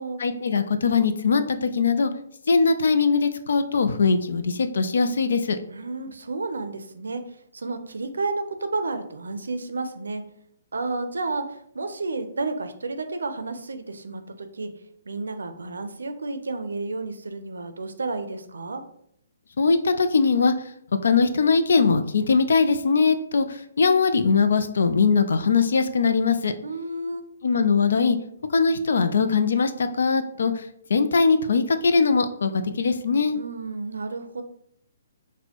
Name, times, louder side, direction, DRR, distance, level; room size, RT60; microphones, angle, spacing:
voice 1, 0.2-2.1 2.5-5.6 19.6-20.5 21.0-26.5 27.4-28.2 28.5-30.6 30.9-33.4, left 4 dB, 75° left, 9 dB, 0.4 m, -21 dB
voice 2, 5.7-7.2 7.5-10.2 10.7-14.7 15.1-18.8 26.6-27.2 33.3-34.4, right 3 dB, 90° right, 8 dB, 0.4 m, -31 dB
4.1 x 2.2 x 2.9 m, 0.71 s
hypercardioid pair, 150°, 0 cm